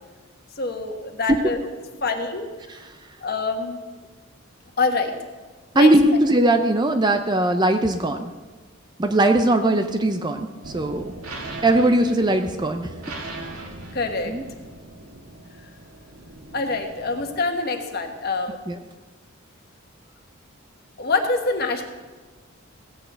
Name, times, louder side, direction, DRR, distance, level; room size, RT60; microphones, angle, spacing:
voice 1, 0.6-1.6 2.0-2.5 3.2-3.8 4.8-5.1 5.7-5.9 13.9-14.3 16.5-18.6 21.0-21.8, left 3 dB, 45° left, 4 dB, 1.3 m, -25 dB
voice 2, 5.7-8.3 9.0-11.1 11.6-12.9 14.3-14.4 18.7-18.8, right 1 dB, 20° right, 6 dB, 0.5 m, -20 dB
sound 1, 10.6-17.3, right 2 dB, 75° right, 2.1 m, -39 dB
16.5 x 6.4 x 7.9 m, 1.3 s
head